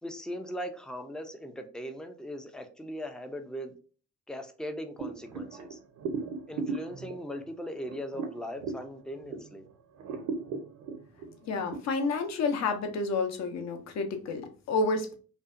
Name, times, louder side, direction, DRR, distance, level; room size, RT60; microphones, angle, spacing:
voice 1, 0.0-3.7 4.3-5.8 6.5-9.7, equal, 5° left, 6 dB, 0.3 m, -39 dB
sound 1, 5.0-9.6 10.0-11.8, right 5 dB, 75° right, 0.6 m, -37 dB
voice 2, 11.4-15.1, left 3 dB, 65° left, 6 dB, 0.6 m, -30 dB
2.5 x 2.1 x 2.4 m, 0.39 s
cardioid pair, 90°, 30 cm